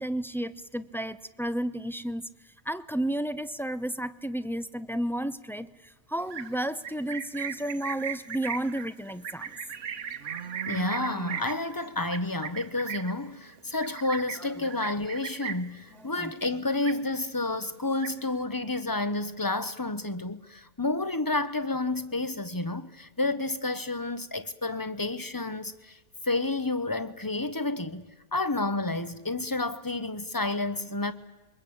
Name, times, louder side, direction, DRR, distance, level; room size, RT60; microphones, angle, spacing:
voice 1, 0.0-2.3 2.7-5.7 6.1-9.5 16.2-16.3, right 1 dB, 5° left, 0.5 m, -32 dB
Livestock farm animals working animals, 6.2-15.8 16.1-16.5 16.7-17.4 17.7-18.4, right 7 dB, 80° right, 1.4 m, -37 dB
voice 2, 10.6-26.0 26.2-28.1 28.3-31.1, left 2 dB, 20° left, 0.9 m, -30 dB
27.5 x 23.0 x 8.6 m
omnidirectional pair, 1.3 m